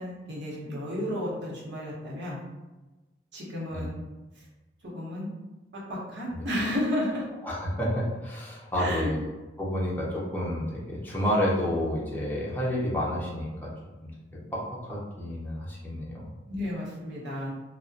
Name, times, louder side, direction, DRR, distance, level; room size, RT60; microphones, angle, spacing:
voice 1, 0.0-2.4 3.3-4.0 4.8-5.3 5.9-7.2 8.8-9.1 16.5-17.5, left 1 dB, 80° right, -6 dB, 0.9 m, -32 dB
voice 2, 7.4-9.2 9.6-13.7 14.5-16.2, equal, 10° left, -6 dB, 0.6 m, -30 dB
2.6 x 2.1 x 2.4 m, 1.1 s
head